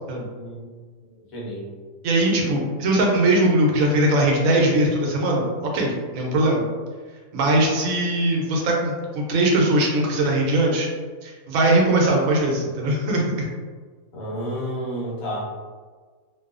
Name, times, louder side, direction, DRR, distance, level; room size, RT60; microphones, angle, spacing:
voice 1, 1.3-1.6 14.1-15.4, equal, 75° left, -6 dB, 1.1 m, -30 dB
voice 2, 2.0-5.5 5.7-6.6 7.3-10.9 11.2-13.5, right 1 dB, 80° right, -1 dB, 1.0 m, -20 dB
2.6 x 2.2 x 2.4 m, 1.5 s
omnidirectional pair, 1.5 m